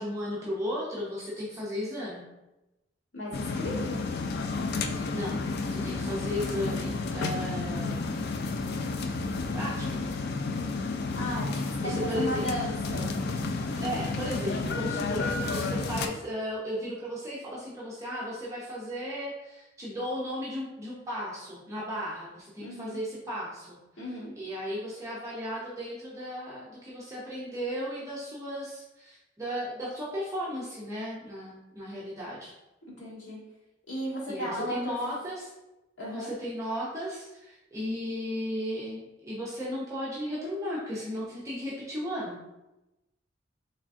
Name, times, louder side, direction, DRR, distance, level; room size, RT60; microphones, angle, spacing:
voice 1, 0.0-2.2 4.9-5.4 5.7-8.1 9.5-10.1 11.8-12.5 13.8-23.8 24.4-32.5 34.3-35.5 36.1-42.4, equal, 15° right, -6 dB, 0.6 m, -35 dB
voice 2, 3.1-4.0 11.1-13.1 22.6-23.0 24.0-24.3 32.9-33.4 33.9-35.2 36.0-36.3, equal, 80° left, -5 dB, 1.3 m, -35 dB
sound 1, 3.3-16.1, left 3 dB, 55° left, 0.3 m, -31 dB
3.6 x 3.2 x 2.5 m, 0.97 s
head